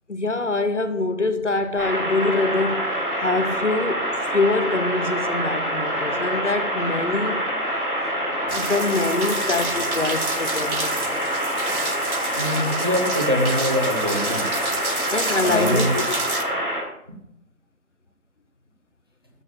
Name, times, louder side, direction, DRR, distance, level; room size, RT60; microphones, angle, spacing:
voice 1, 0.1-7.5 8.5-11.0 15.1-16.0, left 3 dB, 50° left, 1.6 m, -25 dB
sound 1, 1.8-16.8, equal, 5° left, 4.7 m, -26 dB
sound 2, 8.5-16.4, right 3 dB, 70° right, 2.2 m, -31 dB
voice 2, 12.3-14.5 15.4-16.0, left 1 dB, 15° right, 1.0 m, -23 dB
14.0 x 6.9 x 9.0 m
figure-of-eight pair, 175°, 44 cm